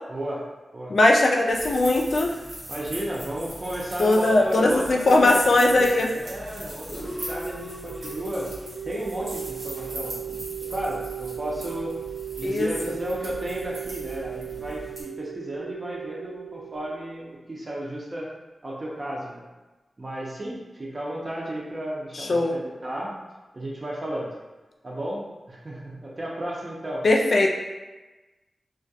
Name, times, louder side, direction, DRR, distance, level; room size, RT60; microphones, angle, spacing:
voice 1, 0.1-0.5 0.7-0.9 2.7-5.9 6.1-8.5 8.8-12.0 12.4-18.3 18.6-19.4 20.0-23.2 23.5-24.3 24.8-27.1, right 1 dB, 35° right, -4 dB, 0.5 m, -33 dB
voice 2, 0.9-2.3 4.0-6.1 12.4-12.7 22.1-22.5 27.0-27.5, left 2 dB, 65° left, 0 dB, 0.3 m, -19 dB
sound 1, 1.5-15.0, right 1 dB, 85° right, 1.2 m, -40 dB
sound 2, 6.9-17.6, right 8 dB, 5° left, 0.8 m, -37 dB
2.3 x 2.1 x 2.6 m, 1.1 s
wide cardioid pair, 90°, 0 cm